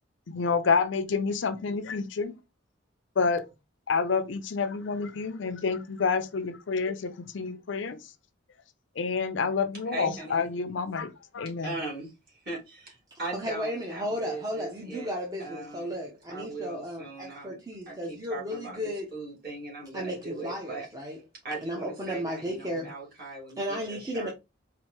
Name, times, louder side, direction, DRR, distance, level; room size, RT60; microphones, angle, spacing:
voice 1, 0.3-2.4 3.2-3.4 3.9-8.0 9.0-11.7, left 5 dB, 65° left, 0.5 m, -28 dB
voice 2, 9.9-10.5 11.4-15.1 15.4-16.0 16.3-17.6 17.9-20.9 21.4-24.3, right 3 dB, 50° right, 2.0 m, -39 dB
voice 3, 13.3-19.1 19.9-21.2 21.6-22.9 23.6-24.3, equal, 20° right, 0.6 m, -34 dB
4.3 x 2.5 x 2.9 m
head